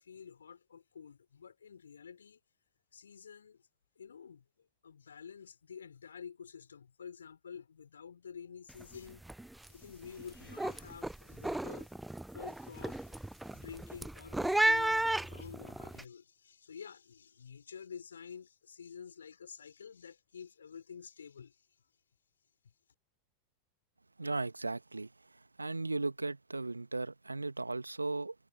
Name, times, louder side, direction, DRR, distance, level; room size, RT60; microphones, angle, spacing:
voice 1, 0.0-2.4 2.9-3.6 4.0-4.4 4.8-9.2 9.6-12.0 12.3-21.6, left 7 dB, 70° left, 5.5 m, -50 dB
sound 1, 8.7-9.0 9.2-9.7 10.1-16.0, right 1 dB, 5° right, 0.5 m, -34 dB
voice 2, 24.2-25.1 25.6-28.3, right 3 dB, 80° right, 1.8 m, -36 dB
figure-of-eight pair, 90°, 0 cm